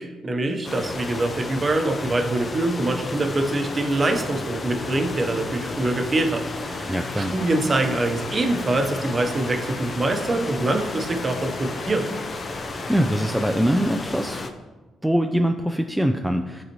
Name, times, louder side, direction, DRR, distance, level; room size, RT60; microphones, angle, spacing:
voice 1, 0.0-12.1, right 2 dB, 30° right, 5 dB, 0.9 m, -24 dB
sound 1, 0.6-14.5, left 3 dB, 35° left, 0.6 m, -33 dB
sound 2, 4.6-10.9, left 2 dB, 70° left, 1.5 m, -42 dB
sound 3, 6.1-13.5, left 4 dB, 90° left, 0.9 m, -42 dB
voice 2, 6.9-7.3 12.9-14.4 15.0-16.6, equal, 5° right, 5 dB, 0.4 m, -23 dB
10.5 x 4.0 x 3.0 m, 1.3 s
cardioid pair, 90°, 0 cm